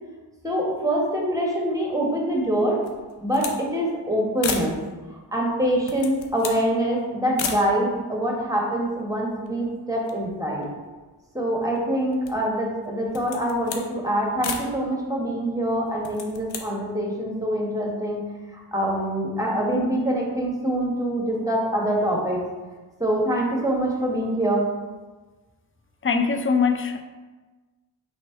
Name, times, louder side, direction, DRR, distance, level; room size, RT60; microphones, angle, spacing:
voice 1, 0.4-2.8 3.2-4.7 5.3-10.7 11.3-18.2 18.5-22.4 23.0-24.6, right 1 dB, 10° right, -2 dB, 1.2 m, -25 dB
sound 1, 2.8-3.6 3.9-4.0 4.4-4.8 5.6-6.7 7.4-7.7 8.4-8.5 8.7-9.6 10.0-11.2 11.8-12.5 13.0-13.9 14.4-14.7 15.9-16.7, left 5 dB, 85° left, 0.6 m, -34 dB
voice 2, 26.0-27.0, left 5 dB, 30° left, 7 dB, 0.4 m, -22 dB
3.5 x 3.2 x 4.4 m, 1.3 s
cardioid pair, 45°, 44 cm